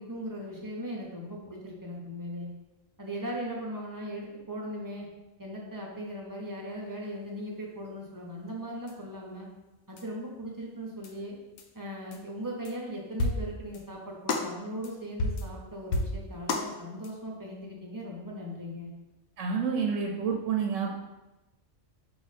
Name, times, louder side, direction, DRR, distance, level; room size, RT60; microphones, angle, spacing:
voice 1, 0.0-2.5 3.0-5.1 5.4-9.5 9.9-11.4 11.7-18.9, equal, 20° right, -3 dB, 0.7 m, -38 dB
sound 1, 8.9-9.0 10.0-10.1 11.0-11.1 11.6-11.7 12.1-12.2 12.6-12.7 13.2-13.8 14.3-14.6 14.8-14.9 15.2-15.6 15.9-16.7 17.0-17.1, left 2 dB, 85° left, 1.0 m, -31 dB
voice 2, 19.4-20.9, right 6 dB, 70° right, 1 dB, 0.9 m, -28 dB
4.9 x 2.7 x 4.1 m, 1.0 s
omnidirectional pair, 1.4 m